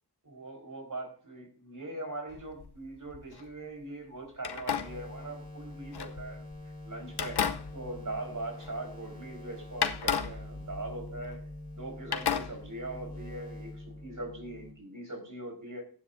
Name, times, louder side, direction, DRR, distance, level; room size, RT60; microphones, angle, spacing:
voice 1, 0.2-6.4 6.8-11.4 11.7-15.8, right 2 dB, 50° right, 3 dB, 4.3 m, -41 dB
sound 1, 2.3-3.5 4.4-6.6 7.1-9.0 9.3-9.4 9.8-11.8 12.1-13.1, left 7 dB, 80° left, 0.9 m, -35 dB
sound 2, 4.8-14.7, left 1 dB, 20° left, 4.7 m, -45 dB
15.5 x 10.0 x 2.6 m, 0.42 s
wide cardioid pair, 50°, 39 cm